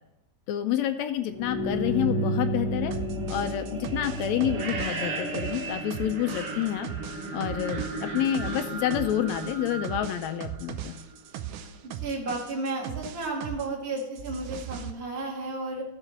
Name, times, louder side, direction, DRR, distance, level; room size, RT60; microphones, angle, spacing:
voice 1, 0.5-2.9 3.3-6.9 7.3-11.0, left 11 dB, 80° left, 9 dB, 1.7 m, -28 dB
sound 1, 1.2-11.1, right 1 dB, 45° right, 1.2 m, -33 dB
sound 2, 2.9-13.7 14.0-14.9, right 10 dB, 85° right, 2.2 m, -39 dB
voice 2, 11.9-15.8, right 2 dB, 25° right, -2 dB, 1.7 m, -33 dB
14.5 x 4.9 x 5.6 m, 0.89 s
omnidirectional pair, 3.5 m